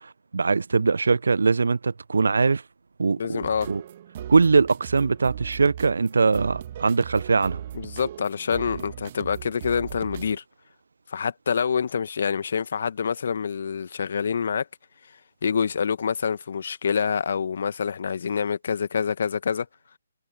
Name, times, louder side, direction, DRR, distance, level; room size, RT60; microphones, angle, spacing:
voice 1, 0.3-2.6 3.0-3.8 4.3-7.6, right 4 dB, 65° right, 0.8 m, -21 dB
voice 2, 3.2-3.7 7.7-10.4 11.1-14.7 15.4-19.7, left 6 dB, 55° left, 1.9 m, -26 dB
sound 1, 3.4-10.4, right 11 dB, 40° right, 1.6 m, -38 dB
figure-of-eight pair, 140°, 0 cm